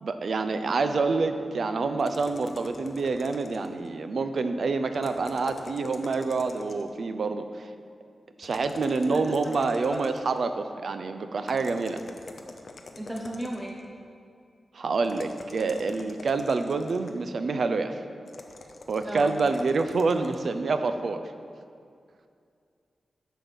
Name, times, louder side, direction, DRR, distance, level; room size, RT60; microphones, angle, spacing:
voice 1, 0.0-7.7 8.4-12.0 14.7-18.0 18.9-21.2, right 4 dB, 60° right, 9 dB, 0.6 m, -27 dB
sound 1, 2.0-3.9 4.9-7.0 8.4-10.4 11.5-13.8 15.0-17.3 18.3-20.5, left 3 dB, 45° left, 0.7 m, -45 dB
voice 2, 9.1-10.0 13.0-13.8 19.0-19.4, right 1 dB, 15° right, 1 dB, 0.7 m, -35 dB
8.9 x 7.1 x 6.3 m, 2.3 s
wide cardioid pair, 140°, 0 cm